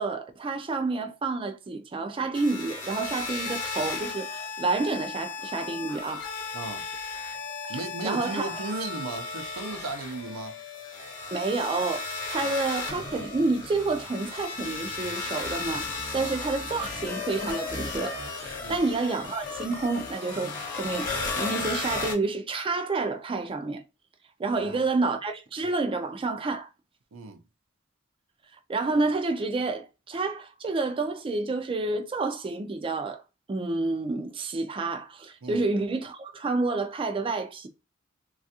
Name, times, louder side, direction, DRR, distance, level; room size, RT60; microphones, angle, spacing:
voice 1, 0.0-6.3 7.7-8.5 11.3-23.8 24.4-26.7 28.7-33.2 33.5-37.7, right 3 dB, 25° right, 0.4 m, -29 dB
sound 1, 2.3-22.1, left 4 dB, 40° left, 1.0 m, -35 dB
voice 2, 6.5-6.9 7.7-10.6 12.4-12.5 16.1-16.3 18.6-18.8 24.5-24.9 27.1-27.4 35.4-35.7, right 3 dB, 90° right, 0.5 m, -36 dB
3.3 x 2.3 x 2.7 m
head